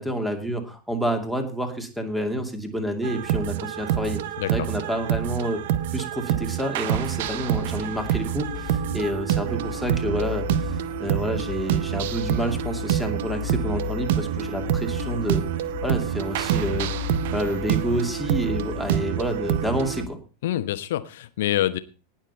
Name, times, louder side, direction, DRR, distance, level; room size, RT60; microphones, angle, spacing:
voice 1, 0.0-4.2 4.5-5.6 5.9-15.4 15.8-20.2, right 1 dB, 5° right, 6 dB, 2.5 m, -29 dB
sound 1, 3.0-20.0, right 11 dB, 50° right, 0.9 m, -27 dB
voice 2, 4.4-4.7 20.4-21.8, left 13 dB, 55° left, 13 dB, 1.1 m, -26 dB
sound 2, 7.1-20.1, left 13 dB, 40° left, 1.6 m, -35 dB
19.0 x 7.3 x 4.3 m, 0.35 s
figure-of-eight pair, 90°, 0 cm